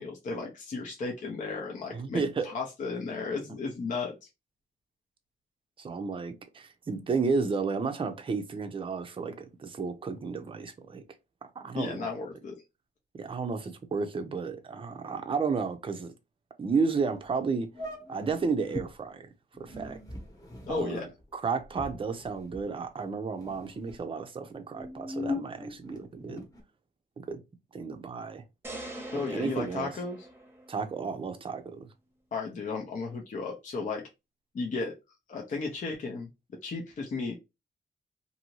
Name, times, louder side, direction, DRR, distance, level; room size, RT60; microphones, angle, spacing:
voice 1, 0.0-4.2 11.7-12.5 20.7-21.1 29.1-30.2 32.3-34.0 34.5-34.9 35.3-36.3 36.6-37.3, left 4 dB, 45° left, 0.7 m, -34 dB
voice 2, 1.9-2.5 5.8-11.0 11.6-12.1 13.1-16.1 16.6-17.7 18.1-19.3 19.6-20.0 20.7-26.4 27.3-27.4 27.7-28.4 29.1-29.9 30.7-31.9, right 5 dB, 30° right, 0.5 m, -32 dB
sound 1, 17.2-17.3 17.7-18.9 19.5-23.0 23.3-24.0 24.6-26.6, left 2 dB, 20° left, 1.0 m, -40 dB
sound 2, 28.6-30.9, right 1 dB, 15° right, 0.9 m, -43 dB
2.7 x 2.7 x 3.0 m
cardioid pair, 110°, 18 cm